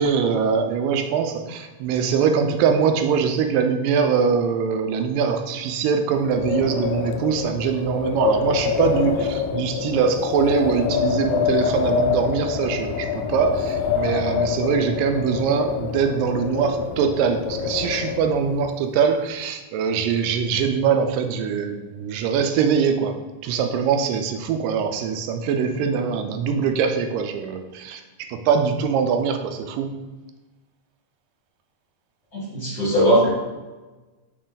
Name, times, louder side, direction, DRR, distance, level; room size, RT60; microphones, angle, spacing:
voice 1, 0.0-23.2 23.4-29.9, right 6 dB, 85° right, 6 dB, 2.3 m, -22 dB
Wind, 6.2-18.8, left 7 dB, 80° left, 2.0 m, -26 dB
voice 2, 32.3-33.3, equal, 30° left, -9 dB, 2.2 m, -19 dB
6.4 x 4.9 x 3.9 m, 1.2 s
omnidirectional pair, 3.9 m